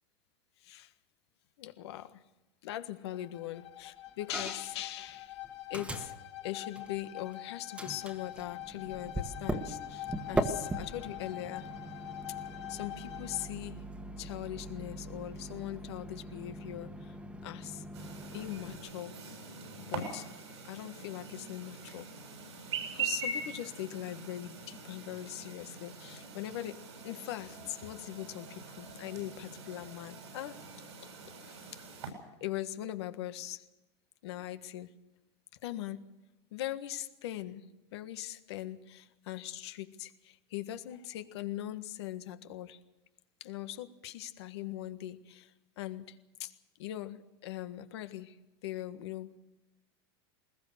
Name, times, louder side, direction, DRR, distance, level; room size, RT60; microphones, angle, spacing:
voice 1, 0.6-0.9 1.6-2.2 2.6-5.4 5.7-6.1 6.4-11.7 12.7-13.9 14.2-17.1 17.4-17.8 18.3-19.2 19.8-20.3 20.6-22.1 22.6-30.6 31.0-31.1 31.4-31.8 32.4-33.6 34.2-35.0 35.6-36.1 36.5-42.8 43.4-46.5 46.8-48.4 48.6-49.4, left 13 dB, 75° left, 9 dB, 1.5 m, -41 dB
Bowed string instrument, 3.1-13.6, left 15 dB, 90° left, 3.4 m, -45 dB
Microwave oven, 4.3-4.8 5.1-7.3 7.7-18.8, right 1 dB, 10° right, 1.6 m, -40 dB
Chirp tweet, 17.9-32.1, right 4 dB, 90° right, 7.7 m, -43 dB
21.0 x 20.5 x 6.8 m, 1.0 s
supercardioid pair, 130°, 14 cm